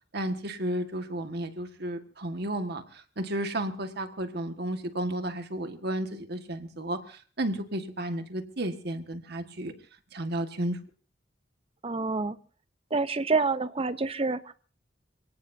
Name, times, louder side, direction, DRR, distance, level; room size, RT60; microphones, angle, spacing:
voice 1, 0.1-9.7 10.1-10.8, right 1 dB, 60° right, 7 dB, 1.7 m, -33 dB
voice 2, 11.8-12.4 12.9-14.5, right 3 dB, 30° right, 13 dB, 0.8 m, -27 dB
28.5 x 17.5 x 2.7 m, 0.41 s
head